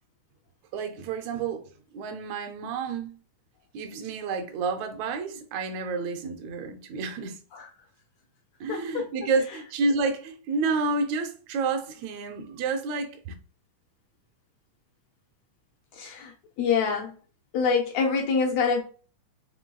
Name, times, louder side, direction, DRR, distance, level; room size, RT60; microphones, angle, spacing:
voice 1, 0.7-1.6 1.9-3.2 3.7-7.4 8.6-13.4, right 4 dB, 75° right, 1.7 m, -29 dB
voice 2, 8.7-9.1 15.9-17.2 17.5-18.8, left 5 dB, 85° left, 1.5 m, -26 dB
5.8 x 3.0 x 2.2 m
omnidirectional pair, 3.6 m